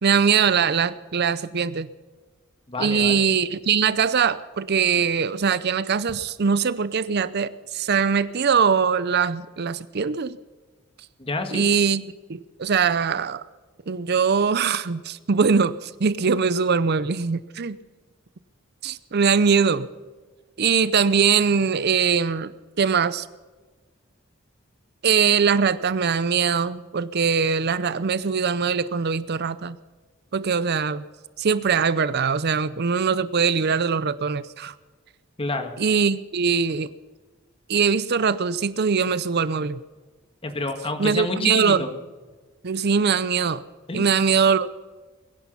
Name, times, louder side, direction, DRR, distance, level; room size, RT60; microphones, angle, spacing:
voice 1, 0.0-1.9 2.8-10.4 11.5-12.0 12.3-13.4 13.9-17.8 18.8-19.9 20.6-22.5 22.8-23.3 25.0-29.8 30.3-31.0 31.4-34.7 35.8-36.9 37.7-39.8 41.0-41.8 42.6-43.6 43.9-44.7, right 6 dB, 55° right, 16 dB, 0.6 m, -22 dB
voice 2, 2.7-3.3 11.2-11.6 35.4-35.7 40.4-41.9 43.9-44.1, left 2 dB, 25° left, 6 dB, 1.8 m, -28 dB
22.0 x 10.5 x 5.6 m, 1.3 s
head